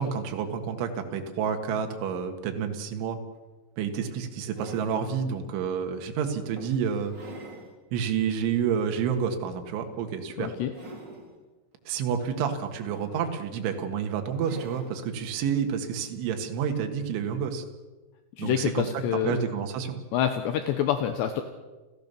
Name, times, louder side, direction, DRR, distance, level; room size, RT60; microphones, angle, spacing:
voice 1, 0.0-3.2 3.8-7.2 7.9-10.5 11.9-17.6 18.4-20.0, right 7 dB, 80° right, 4 dB, 4.0 m, -29 dB
sound 1, 3.3-3.4 4.1-5.1 5.8-5.9 6.6-7.7 8.2-8.3 9.9-10.2 10.6-11.4 12.5-13.4 14.4-15.0 16.3-16.4, right 2 dB, 25° right, 3.7 m, -45 dB
voice 2, 10.4-10.7 18.4-19.4 20.1-21.4, left 10 dB, 75° left, 8 dB, 3.0 m, -27 dB
29.5 x 14.0 x 6.9 m, 1.2 s
omnidirectional pair, 5.5 m